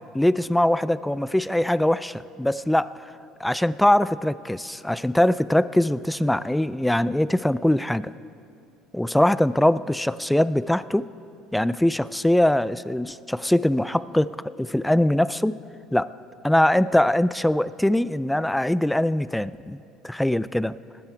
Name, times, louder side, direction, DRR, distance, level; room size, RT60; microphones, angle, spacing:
voice 1, 0.1-2.9 3.4-8.1 8.9-11.1 11.5-15.6 15.9-16.1 16.4-19.8 20.0-20.8, left 1 dB, 5° left, 17 dB, 0.3 m, -22 dB
19.5 x 13.0 x 4.6 m, 2.5 s
cardioid pair, 110°, 0 cm